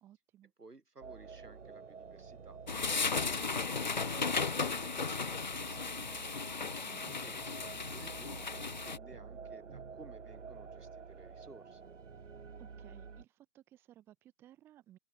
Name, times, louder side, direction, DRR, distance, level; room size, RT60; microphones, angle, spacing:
voice 1, 0.0-0.5 6.8-7.1 12.6-15.0, right 12 dB, 5° right, 1.5 m, -59 dB
voice 2, 0.6-2.6 2.9-6.3 7.2-11.9, right 3 dB, 85° right, 6.1 m, -56 dB
sound 1, 1.0-13.2, right 5 dB, 55° right, 2.8 m, -49 dB
sound 2, 2.7-9.0, left 4 dB, 30° left, 0.8 m, -35 dB
open air
figure-of-eight pair, 160°, 46 cm